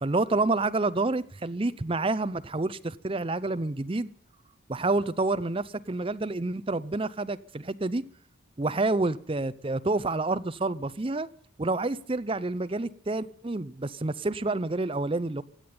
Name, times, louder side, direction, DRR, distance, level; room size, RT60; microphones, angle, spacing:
voice 1, 0.0-4.1 4.7-8.0 8.6-11.3 11.6-15.4, right 2 dB, 25° right, 14 dB, 0.6 m, -28 dB
16.5 x 8.7 x 9.6 m, 0.66 s
head